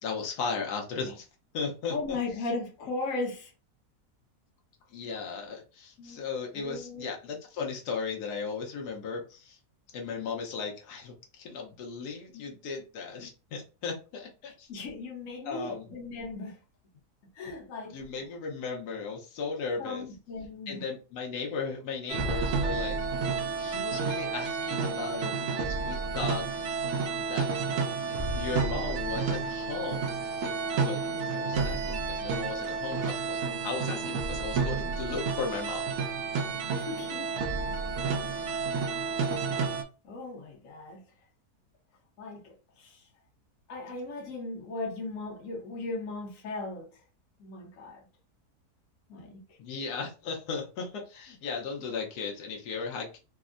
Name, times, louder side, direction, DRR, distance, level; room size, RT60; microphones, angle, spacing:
voice 1, 0.0-1.3 1.5-2.2 4.9-9.6 9.9-14.7 15.4-15.8 17.9-20.1 20.7-23.0 23.6-26.5 27.2-27.5 28.0-30.1 30.9-31.0 31.3-36.0 49.6-53.2, left 5 dB, 90° left, 1.3 m, -36 dB
voice 2, 1.9-3.5 6.0-6.2 6.5-7.1 14.5-16.6 17.4-18.0 19.8-20.8 36.7-37.3 39.0-39.6 40.0-41.0 42.2-43.0 43.7-46.9 47.4-48.1 49.1-49.4, left 3 dB, 60° left, 1.2 m, -37 dB
sound 1, 22.1-39.8, right 5 dB, 70° right, 0.7 m, -31 dB
3.5 x 2.0 x 2.4 m
omnidirectional pair, 1.6 m